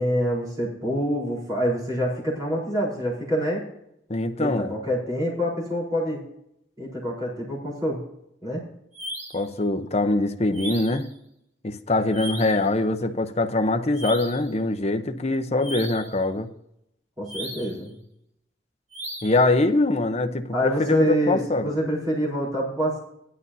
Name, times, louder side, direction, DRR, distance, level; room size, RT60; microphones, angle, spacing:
voice 1, 0.0-3.6 4.4-6.2 6.8-8.0 8.4-8.6 17.2-17.9 20.5-23.0, equal, 20° right, -5 dB, 4.3 m, -26 dB
voice 2, 4.1-4.7 9.3-11.1 11.6-16.5 19.2-21.7, left 2 dB, 35° left, 7 dB, 0.8 m, -23 dB
sound 1, 8.9-9.5 10.5-11.1 12.1-12.7 13.9-14.5 15.6-16.2 17.3-17.8 18.9-19.5, right 1 dB, 35° right, 2.4 m, -36 dB
16.5 x 11.5 x 2.8 m, 0.78 s
head